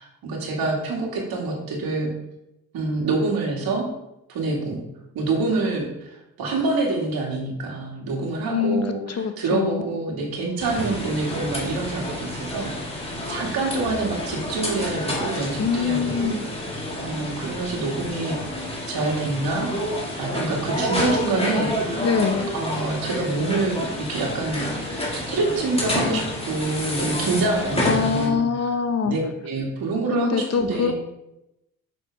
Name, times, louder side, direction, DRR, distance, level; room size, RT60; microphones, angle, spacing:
voice 1, 0.0-2.1 2.7-3.9 4.3-4.8 5.1-16.4 16.6-18.6 18.9-22.2 22.5-28.7 29.0-30.9, right 3 dB, 70° right, -1 dB, 2.2 m, -27 dB
voice 2, 8.5-8.8 9.2-9.8 15.6-16.4 22.0-22.5 27.8-29.2 30.1-30.9, left 6 dB, 40° left, 7 dB, 0.9 m, -23 dB
sound 1, 10.6-28.3, left 1 dB, 15° left, 2.2 m, -29 dB
6.9 x 6.1 x 3.5 m, 0.88 s
cardioid pair, 85°, 37 cm